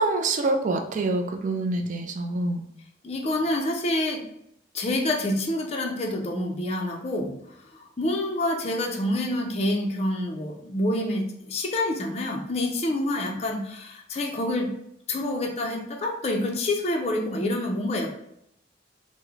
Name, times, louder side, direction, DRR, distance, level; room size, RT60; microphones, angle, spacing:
voice 1, 0.0-2.6, right 2 dB, 40° right, 4 dB, 0.3 m, -26 dB
voice 2, 3.0-4.3 4.7-7.4 8.0-14.8 15.1-18.1, left 1 dB, 35° left, 1 dB, 0.4 m, -27 dB
3.6 x 2.0 x 3.0 m, 0.75 s
head